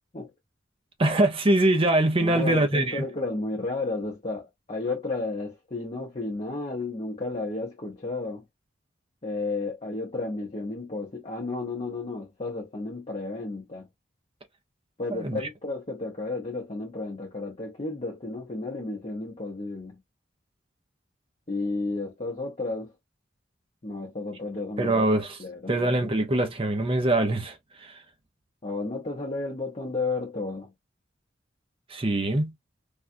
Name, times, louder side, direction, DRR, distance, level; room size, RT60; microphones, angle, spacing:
voice 1, 1.0-3.0 15.1-15.4 24.8-25.4 25.7-27.6 31.9-32.5, right 1 dB, 30° right, 0.7 m, -23 dB
voice 2, 2.2-8.4 9.2-13.9 15.0-20.0 21.5-22.9 23.8-25.0 25.4-25.8 28.6-30.7, left 3 dB, 35° left, 0.8 m, -32 dB
3.4 x 2.4 x 2.6 m
head